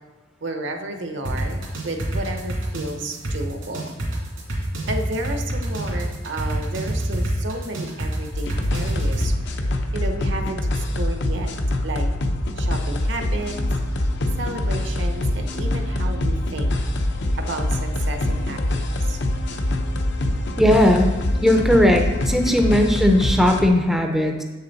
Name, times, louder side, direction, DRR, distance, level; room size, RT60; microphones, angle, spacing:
voice 1, 0.4-4.0 4.9-9.3 9.6-11.5 11.8-12.1 12.6-13.6 14.4-16.7 17.4-19.2, right 2 dB, 65° right, 5 dB, 0.8 m, -32 dB
sound 1, 1.2-9.2, right 1 dB, 85° right, 2.6 m, -27 dB
sound 2, 8.3-23.7, left 1 dB, 60° left, 0.7 m, -24 dB
voice 2, 20.6-21.1 21.4-24.4, left 1 dB, ahead, 3 dB, 0.5 m, -17 dB
7.6 x 6.7 x 4.0 m, 1.2 s
head